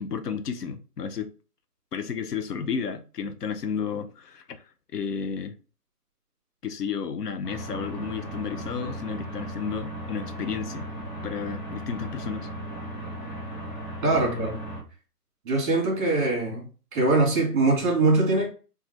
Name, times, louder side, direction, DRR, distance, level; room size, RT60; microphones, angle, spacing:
voice 1, 0.0-1.3 1.9-4.6 4.9-5.6 6.6-10.9 11.2-12.5, left 6 dB, 80° left, 0.7 m, -32 dB
sound 1, 7.4-14.8, right 1 dB, 30° left, 1.2 m, -36 dB
voice 2, 14.0-14.6 15.5-16.7 16.9-18.5, right 2 dB, 30° right, 1.8 m, -22 dB
4.8 x 2.6 x 3.1 m
hypercardioid pair, 155°, 47 cm